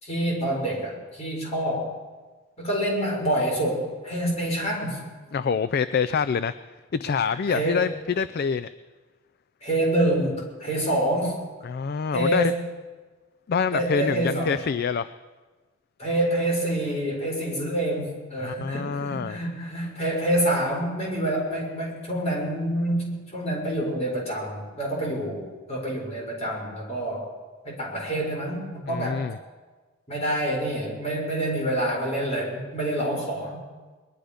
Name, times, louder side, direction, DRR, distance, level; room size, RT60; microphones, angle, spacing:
voice 1, 0.0-1.9 2.6-5.0 7.5-7.9 9.6-11.4 12.1-12.6 13.7-14.6 16.0-27.3 27.6-29.2 30.1-33.6, right 1 dB, 30° left, -2 dB, 4.7 m, -27 dB
voice 2, 5.3-6.6 6.9-8.7 11.6-12.5 13.5-15.1 18.4-19.4 28.9-29.4, left 6 dB, 50° left, 13 dB, 0.4 m, -26 dB
21.0 x 11.5 x 5.1 m, 1.3 s
head